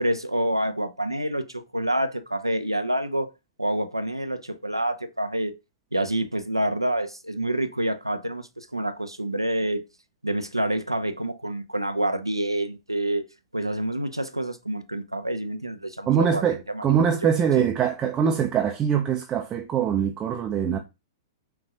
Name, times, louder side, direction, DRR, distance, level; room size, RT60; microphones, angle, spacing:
voice 1, 0.0-3.3 3.6-5.5 5.9-9.8 10.2-16.8 17.2-17.3 17.6-17.7, right 1 dB, 90° right, 0.5 m, -27 dB
voice 2, 16.1-20.8, right 8 dB, 20° right, 0.5 m, -23 dB
5.7 x 2.4 x 2.8 m
figure-of-eight pair, 105°, 2 cm